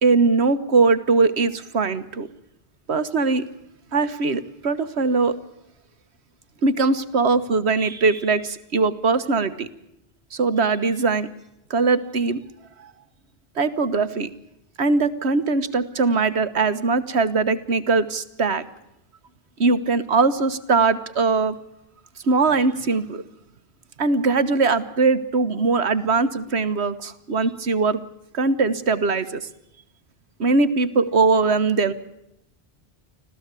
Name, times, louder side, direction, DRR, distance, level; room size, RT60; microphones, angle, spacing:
voice 1, 0.0-2.3 2.9-3.4 3.9-5.3 6.6-9.7 10.3-11.3 11.7-12.4 13.6-14.3 14.8-18.6 19.6-21.5 22.2-23.2 24.0-28.0 28.3-29.4 30.4-31.9, right 4 dB, 85° right, 13 dB, 1.6 m, -21 dB
26.0 x 16.0 x 8.3 m, 0.83 s
omnidirectional pair, 1.1 m